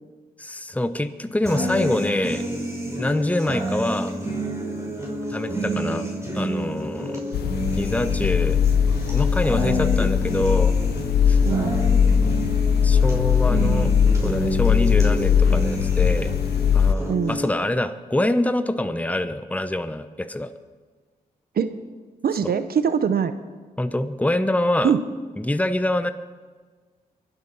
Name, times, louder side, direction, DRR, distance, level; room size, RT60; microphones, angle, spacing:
voice 1, 0.4-2.4 3.0-4.2 5.3-6.1 6.3-7.2 7.7-8.6 9.1-10.7 11.3-11.4 12.8-13.9 14.2-16.3 16.7-20.5 23.8-24.9 25.4-26.1, left 1 dB, 10° left, 11 dB, 0.9 m, -25 dB
sound 1, 1.4-17.5, equal, 15° right, 5.7 m, -29 dB
sound 2, 7.3-17.0, left 7 dB, 80° left, 0.5 m, -20 dB
voice 2, 11.4-11.8 17.1-17.4 21.6-21.7 22.2-23.3 24.8-25.0, right 7 dB, 65° right, 11 dB, 0.8 m, -22 dB
23.5 x 8.2 x 5.6 m, 1.4 s
supercardioid pair, 50°, 17 cm